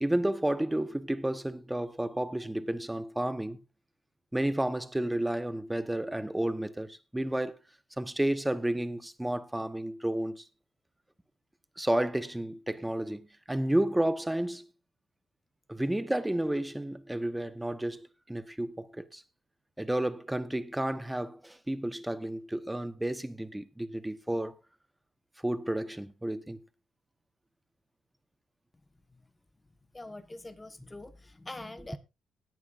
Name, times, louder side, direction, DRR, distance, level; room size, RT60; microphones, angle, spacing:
voice 1, 0.0-3.6 4.3-7.6 8.0-10.4 11.8-14.7 15.7-19.2 19.8-24.6 25.4-26.6 31.9-32.0, right 1 dB, 10° right, 1.1 m, -31 dB
voice 2, 29.9-32.0, left 2 dB, 15° left, 1.4 m, -44 dB
18.0 x 9.3 x 2.6 m
cardioid pair, 90°, 0 cm